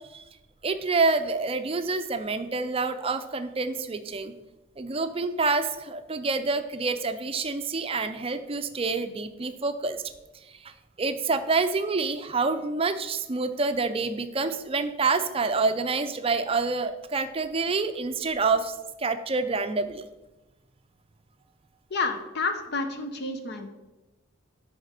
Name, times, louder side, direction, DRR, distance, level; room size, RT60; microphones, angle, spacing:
voice 1, 0.6-4.3 4.8-10.0 10.6-10.7 11.0-20.0, right 4 dB, 25° right, 10 dB, 0.5 m, -27 dB
voice 2, 21.9-23.7, left 3 dB, 55° left, 7 dB, 0.7 m, -30 dB
10.5 x 4.2 x 5.0 m, 1.1 s
head